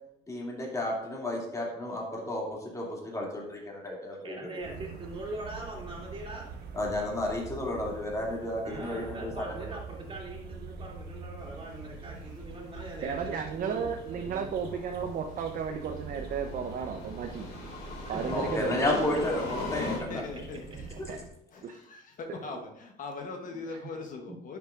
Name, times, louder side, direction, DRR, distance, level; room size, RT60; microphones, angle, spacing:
voice 1, 0.3-4.2 4.6-4.7 6.7-9.5 18.3-20.2 21.0-21.1, left 1 dB, 20° left, -3 dB, 2.6 m, -32 dB
voice 2, 4.2-6.5 8.6-14.5 18.0-18.8 19.7-20.0 20.3-20.4 20.7-20.8 21.1-21.2 23.5-23.6 24.2-24.4, right 2 dB, 30° right, -2 dB, 2.7 m, -42 dB
sound 1, 4.6-21.3, right 4 dB, 70° right, 1.3 m, -44 dB
sound 2, 11.5-20.0, left 3 dB, 75° left, 2.8 m, -41 dB
voice 3, 13.0-17.5 18.1-19.0 21.1-21.2 21.6-21.8 23.7-23.8, right 6 dB, 55° right, 4 dB, 0.8 m, -34 dB
voice 4, 20.1-20.9 21.5-24.6, left 3 dB, 50° left, 3 dB, 1.1 m, -40 dB
10.5 x 7.0 x 2.5 m, 0.81 s
cardioid pair, 110°, 17 cm